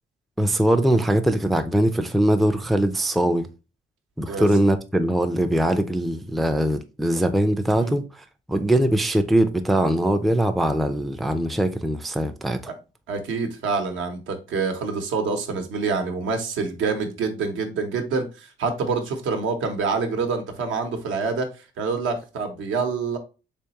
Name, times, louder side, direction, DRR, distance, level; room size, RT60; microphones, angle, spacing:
voice 1, 0.4-3.5 4.2-12.6, right 1 dB, ahead, 0.3 m, -21 dB
voice 2, 13.1-21.5 21.8-23.2, right 4 dB, 80° right, 0.8 m, -26 dB
3.4 x 3.1 x 2.8 m
cardioid pair, 90°, 20 cm